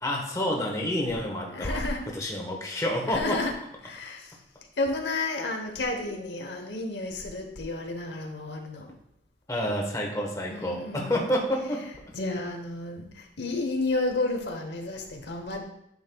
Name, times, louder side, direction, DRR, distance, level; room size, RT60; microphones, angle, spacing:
voice 1, 0.0-1.8 2.1-3.4 9.5-11.8, left 1 dB, 20° left, 0 dB, 1.2 m, -29 dB
voice 2, 1.5-2.0 3.1-3.5 3.8-4.3 4.8-8.9 10.5-11.2 12.1-15.6, left 2 dB, 75° left, 4 dB, 0.9 m, -31 dB
9.5 x 6.4 x 2.2 m, 0.78 s
head